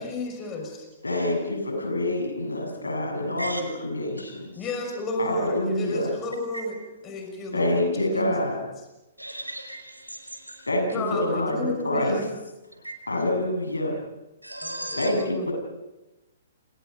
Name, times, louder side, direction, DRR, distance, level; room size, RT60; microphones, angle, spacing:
voice 1, 0.0-0.9 4.6-6.8 7.0-8.3 10.9-12.3 14.6-15.5, left 2 dB, 20° left, 6.3 m, -32 dB
voice 2, 1.0-4.5 5.2-6.1 7.5-8.6 10.7-12.1 13.1-14.0 15.0-15.5, left 1 dB, 80° left, 6.9 m, -26 dB
voice 3, 9.2-10.3 12.8-12.9 14.4-15.1, right 1 dB, 90° right, 5.7 m, -36 dB
29.5 x 25.5 x 5.5 m
figure-of-eight pair, 120°, 0 cm